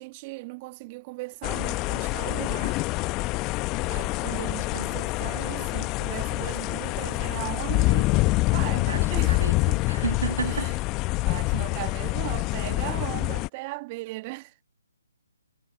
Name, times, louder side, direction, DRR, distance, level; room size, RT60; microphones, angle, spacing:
voice 1, 0.0-2.8 3.8-8.1 8.5-9.8 10.4-10.7 11.1-14.6, right 24 dB, 25° right, 1.6 m, -38 dB
sound 1, 1.4-13.5, left 23 dB, 20° left, 0.9 m, -26 dB
voice 2, 4.7-5.0 8.8-10.7, right 5 dB, 60° right, 1.8 m, -33 dB
figure-of-eight pair, 140°, 0 cm